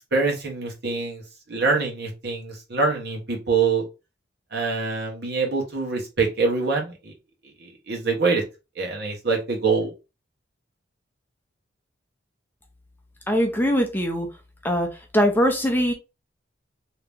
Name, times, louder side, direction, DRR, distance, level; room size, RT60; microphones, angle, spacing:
voice 1, 0.1-1.2 1.5-3.8 4.5-7.1 7.6-8.4 8.7-9.9, right 4 dB, 60° right, 1.3 m, -24 dB
voice 2, 13.3-14.3 14.6-15.9, equal, 10° left, 0.6 m, -22 dB
2.9 x 2.8 x 3.5 m
head